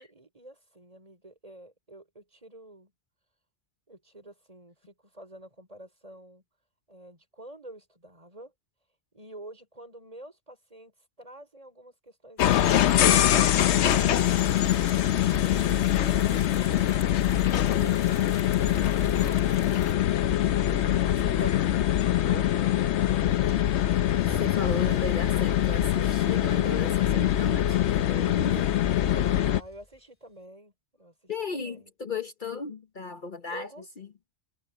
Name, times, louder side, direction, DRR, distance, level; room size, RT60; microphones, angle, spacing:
voice 1, 0.0-2.9 3.9-6.4 6.9-8.5 9.1-18.4 18.8-19.5 21.2-23.4 29.0-30.7 31.0-31.9 33.5-33.9, right 1 dB, 35° right, 5.2 m, -48 dB
sound 1, 12.4-29.6, left 11 dB, 85° left, 1.0 m, -23 dB
sound 2, 12.4-19.9, left 4 dB, 70° left, 2.1 m, -46 dB
voice 2, 20.6-21.6 24.2-28.7 29.1-29.2 31.3-33.7 34.0-34.1, left 4 dB, 50° left, 1.2 m, -36 dB
Car / Engine starting / Accelerating revving vroom, 23.5-30.0, equal, 10° right, 3.2 m, -44 dB
omnidirectional pair, 1.1 m